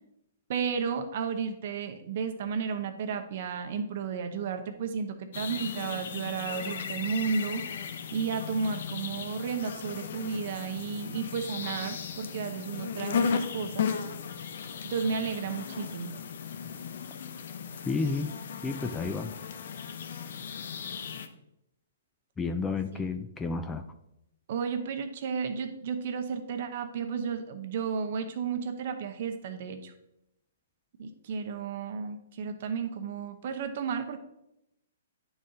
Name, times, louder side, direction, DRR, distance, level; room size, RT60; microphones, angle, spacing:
voice 1, 0.5-7.7 8.1-13.9 14.9-16.2 22.9-23.0 24.5-29.9 31.0-34.2, right 6 dB, 50° right, 7 dB, 0.9 m, -33 dB
sound 1, 5.3-21.3, left 6 dB, 65° left, 0.7 m, -36 dB
voice 2, 17.8-18.3 18.6-19.3 22.4-23.8, left 4 dB, 10° left, 8 dB, 0.4 m, -31 dB
9.6 x 4.1 x 3.8 m, 0.85 s
hypercardioid pair, 150°, 0 cm